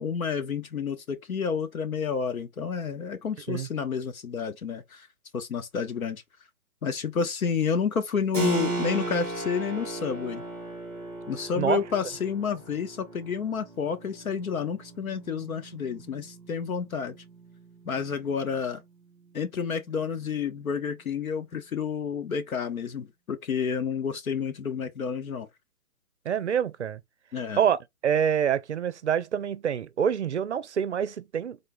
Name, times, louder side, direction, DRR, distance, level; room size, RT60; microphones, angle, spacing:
voice 1, 0.0-5.1 5.3-6.2 6.8-10.4 11.3-17.2 17.8-18.8 19.3-25.5 27.3-27.6, left 6 dB, 70° left, 1.2 m, -30 dB
Keyboard (musical), 8.3-18.7, right 3 dB, 5° left, 1.2 m, -37 dB
voice 2, 26.3-27.0 27.6-31.6, right 8 dB, 50° right, 0.5 m, -26 dB
3.7 x 3.2 x 3.8 m
hypercardioid pair, 150°, 44 cm